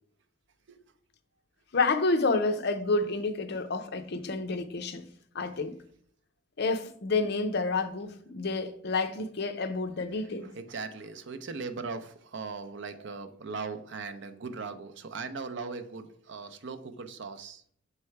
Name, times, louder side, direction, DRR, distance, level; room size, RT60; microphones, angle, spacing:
voice 1, 1.7-5.1 5.3-5.8 6.6-10.5, left 3 dB, 55° left, 0.6 m, -29 dB
voice 2, 10.4-17.6, right 4 dB, 60° right, 0.6 m, -39 dB
6.7 x 3.2 x 4.6 m
head